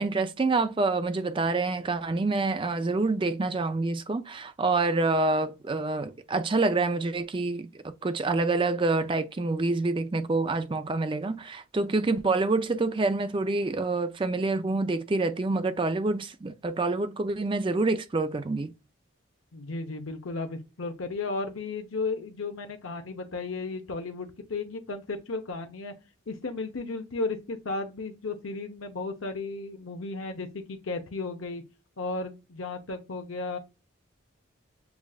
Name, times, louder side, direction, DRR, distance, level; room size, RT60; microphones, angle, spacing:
voice 1, 0.0-7.7 8.0-18.7, right 3 dB, 25° right, 0.4 m, -27 dB
voice 2, 19.5-25.9 26.3-31.6 32.0-33.6, left 3 dB, 75° left, 0.8 m, -34 dB
7.0 x 2.5 x 2.3 m
head